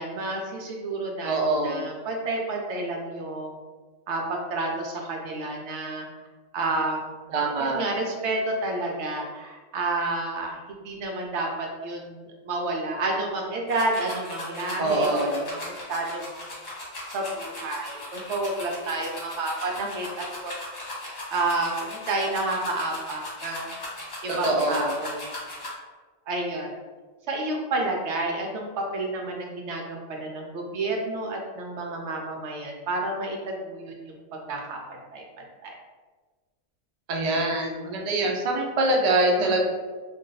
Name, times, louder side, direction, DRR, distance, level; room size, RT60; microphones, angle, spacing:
voice 1, 0.0-1.4 1.6-3.6 4.1-6.1 6.5-7.3 7.6-16.5 17.1-20.5 21.3-23.7 24.2-25.3 26.3-26.7 27.3-35.2 35.6-35.7 39.4-39.6, right 2 dB, 65° right, 1 dB, 0.8 m, -30 dB
voice 2, 1.2-1.9 7.3-7.8 14.8-15.4 24.3-24.9 37.1-39.6, right 2 dB, 90° right, 0 dB, 0.3 m, -24 dB
sound 1, 13.7-25.7, left 1 dB, 40° left, 0.9 m, -38 dB
2.5 x 2.3 x 3.8 m, 1.4 s
omnidirectional pair, 1.4 m